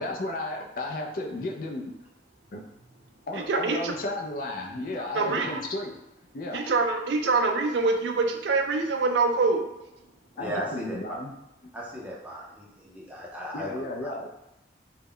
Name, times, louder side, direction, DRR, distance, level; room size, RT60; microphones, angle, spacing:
voice 1, 0.0-1.9 2.5-2.6 3.3-5.9 6.3-6.6 10.4-11.3 13.5-14.3, left 2 dB, 50° left, 1 dB, 0.4 m, -33 dB
voice 2, 3.3-3.9 5.0-5.6 6.5-9.7, right 3 dB, 75° right, 4 dB, 0.4 m, -25 dB
voice 3, 10.4-10.9 11.7-14.1, equal, 10° right, -4 dB, 0.5 m, -37 dB
2.2 x 2.0 x 3.6 m, 0.94 s
head